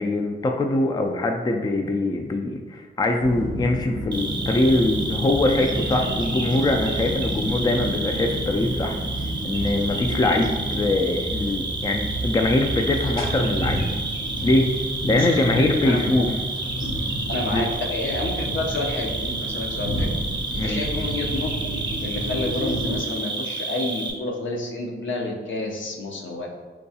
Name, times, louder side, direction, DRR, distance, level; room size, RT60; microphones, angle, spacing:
voice 1, 0.0-9.0 9.4-14.0 14.4-14.7 15.0-16.3 17.5-17.6 20.6-20.8, left 2 dB, 20° left, 3 dB, 0.3 m, -23 dB
sound 1, 3.2-23.0, equal, 85° left, 1.1 m, -30 dB
Cricket, 4.1-24.1, right 3 dB, 20° right, 0.7 m, -31 dB
voice 2, 15.1-16.3 17.3-20.1 20.5-21.7 22.0-26.5, left 2 dB, 65° left, 1 dB, 0.6 m, -29 dB
4.5 x 2.3 x 2.7 m, 1.4 s
cardioid pair, 55°, 21 cm